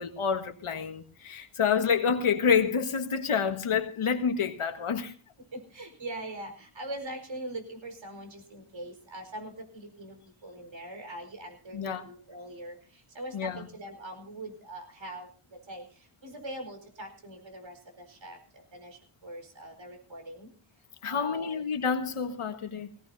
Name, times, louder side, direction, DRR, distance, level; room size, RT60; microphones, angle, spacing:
voice 1, 0.0-5.1 11.7-12.0 13.3-13.7 21.0-22.9, left 6 dB, 80° left, 1.7 m, -28 dB
voice 2, 5.5-10.2 10.4-18.4 18.7-20.5 21.0-21.6, right 1 dB, 65° right, 4.8 m, -42 dB
20.0 x 18.0 x 2.7 m
wide cardioid pair, 85°, 49 cm